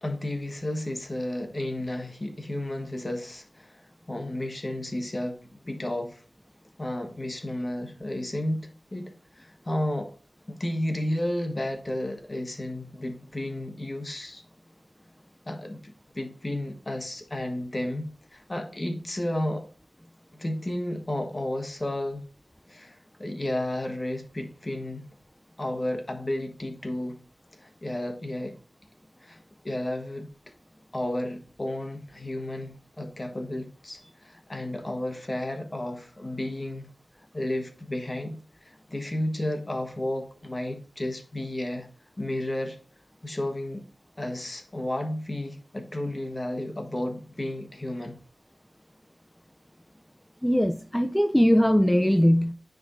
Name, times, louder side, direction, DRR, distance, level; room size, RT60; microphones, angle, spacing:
voice 1, 0.0-6.2 6.8-10.1 10.5-14.4 15.5-19.6 20.3-22.2 22.7-25.0 25.6-27.2 27.6-28.5 29.2-29.4 29.6-30.3 30.9-36.9 37.3-41.9 42.2-42.8 43.2-43.8 44.2-48.2, left 1 dB, 35° left, 5 dB, 1.3 m, -32 dB
voice 2, 50.4-52.5, equal, 5° left, 6 dB, 0.5 m, -21 dB
9.5 x 5.1 x 2.6 m, 0.42 s
wide cardioid pair, 70°, 0 cm